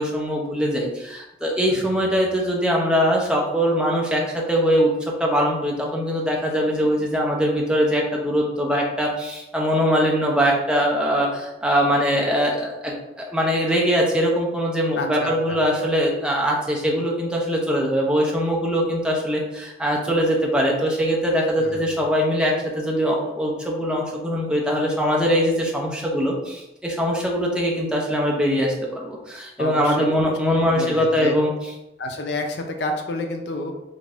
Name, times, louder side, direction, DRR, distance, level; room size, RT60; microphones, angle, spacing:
voice 1, 0.0-4.9 5.2-31.5, equal, 5° right, -2 dB, 0.5 m, -22 dB
voice 2, 15.0-15.6 21.6-21.9 29.6-30.1 30.4-31.4 32.0-33.7, left 2 dB, 65° left, 3 dB, 0.5 m, -29 dB
3.5 x 2.6 x 3.3 m, 0.93 s
head